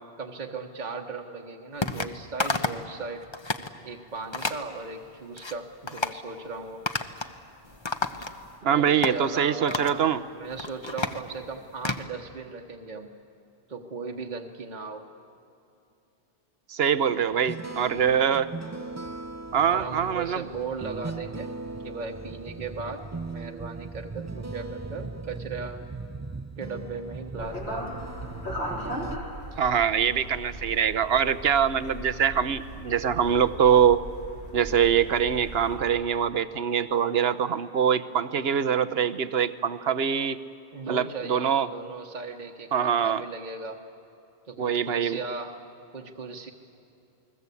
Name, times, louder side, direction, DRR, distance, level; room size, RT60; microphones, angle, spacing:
voice 1, 0.2-3.2 3.8-6.8 8.7-13.1 13.7-15.1 19.7-21.5 21.8-25.9 26.6-28.0 40.7-43.8 44.5-45.6 45.9-46.5, right 4 dB, 45° right, 2 dB, 1.3 m, -37 dB
sound 1, 1.8-2.1 2.4-2.9 3.2-3.7 4.3-4.6 5.1-5.5 5.9-6.2 6.9-7.4 7.6-8.6 9.0-9.2 9.7-10.0 10.4-12.0, left 3 dB, 30° left, 0.9 m, -31 dB
voice 2, 8.6-10.2 16.7-18.5 19.5-20.4 29.6-34.0 34.5-40.4 40.9-41.7 42.7-43.2 44.6-45.2, right 8 dB, 70° right, 13 dB, 1.1 m, -24 dB
sound 2, 17.0-29.2, right 3 dB, 25° right, 0.4 m, -38 dB
sound 3, 27.4-35.8, equal, 85° left, 4.8 m, -38 dB
29.0 x 20.5 x 8.4 m, 2.8 s
omnidirectional pair, 1.1 m